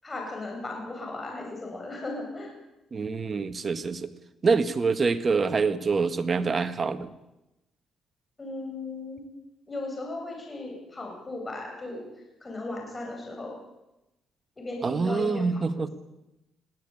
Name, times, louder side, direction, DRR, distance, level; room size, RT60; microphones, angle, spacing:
voice 1, 0.0-2.5 8.4-9.3 9.7-12.0 12.4-13.6 14.6-15.5 15.7-15.9, left 2 dB, 25° left, 1 dB, 7.9 m, -36 dB
voice 2, 2.9-4.1 4.4-7.1 14.8-15.9, right 4 dB, 40° right, 11 dB, 1.7 m, -26 dB
22.0 x 16.0 x 8.7 m, 0.93 s
cardioid pair, 90°, 0 cm